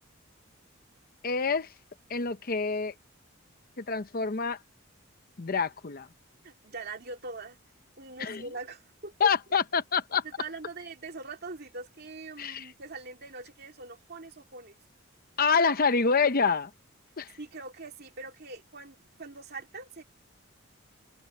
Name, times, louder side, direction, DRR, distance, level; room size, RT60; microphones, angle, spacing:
voice 1, 1.2-1.7 2.1-2.9 3.8-4.6 5.4-6.1 8.2-8.4 9.2-10.2 12.4-12.7 15.4-16.7 17.2-17.3, left 5 dB, 45° left, 0.8 m, -26 dB
voice 2, 6.4-7.6 8.0-9.3 10.2-14.8 17.4-20.0, right 3 dB, 50° right, 2.7 m, -42 dB
head